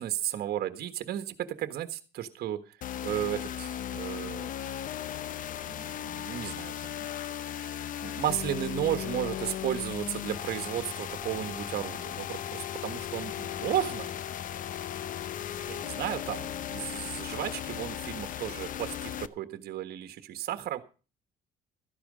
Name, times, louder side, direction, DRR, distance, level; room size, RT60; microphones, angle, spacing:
voice 1, 0.0-2.8 3.0-4.5 5.6-7.1 8.0-14.1 15.7-20.8, right 12 dB, 65° right, 9 dB, 1.5 m, -34 dB
sound 1, 2.8-19.3, left 10 dB, 50° left, 0.7 m, -36 dB
13.5 x 10.5 x 5.1 m, 0.35 s
cardioid pair, 110°, 17 cm